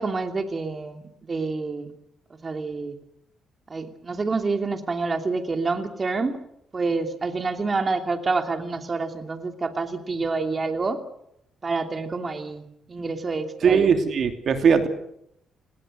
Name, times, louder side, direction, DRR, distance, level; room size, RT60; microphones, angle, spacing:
voice 1, 0.0-1.9 2.4-3.0 3.7-6.4 6.7-11.0 11.6-12.6 12.9-13.9, right 3 dB, 30° right, 5 dB, 2.8 m, -27 dB
voice 2, 13.6-14.9, right 6 dB, 60° right, 6 dB, 2.8 m, -19 dB
28.0 x 20.0 x 6.7 m, 0.76 s
cardioid pair, 90°, 0 cm